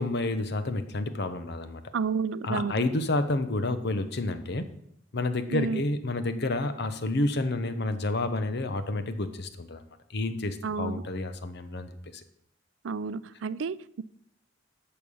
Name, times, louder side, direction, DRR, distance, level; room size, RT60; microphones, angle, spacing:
voice 1, 0.0-1.8 2.4-4.7 5.1-9.8 10.1-12.2, left 2 dB, 60° left, 10 dB, 1.0 m, -29 dB
voice 2, 1.9-2.9 5.5-5.8 10.6-11.0 12.8-14.0, right 5 dB, 80° right, 18 dB, 0.4 m, -31 dB
11.5 x 6.9 x 5.5 m, 0.76 s
head